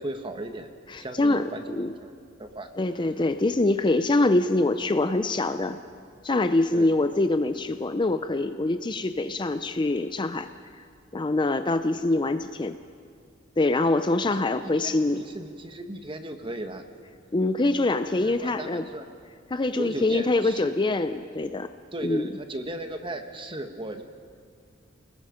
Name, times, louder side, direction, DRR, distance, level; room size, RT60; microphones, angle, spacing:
voice 1, 0.0-2.1 2.4-2.7 6.7-6.9 14.2-16.8 18.2-19.1 19.7-20.7 21.9-24.0, right 1 dB, 25° right, 6 dB, 1.3 m, -36 dB
voice 2, 0.9-1.9 2.8-5.8 6.2-10.5 11.1-12.8 13.6-15.2 17.3-18.9 19.5-21.7 22.0-22.3, left 2 dB, 25° left, 10 dB, 0.5 m, -24 dB
29.5 x 20.0 x 5.1 m, 2.3 s
head